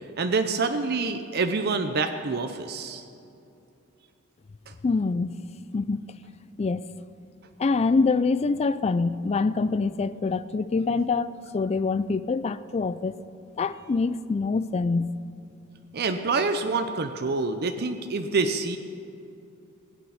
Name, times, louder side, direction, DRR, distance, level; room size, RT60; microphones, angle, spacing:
voice 1, 0.0-3.0 4.7-4.8 15.9-18.8, right 4 dB, 50° right, 0.6 m, -27 dB
voice 2, 4.8-5.3 5.7-6.0 6.6-6.8 7.6-13.1 13.6-15.1, left 4 dB, 30° left, 0.3 m, -25 dB
19.5 x 8.5 x 5.6 m
head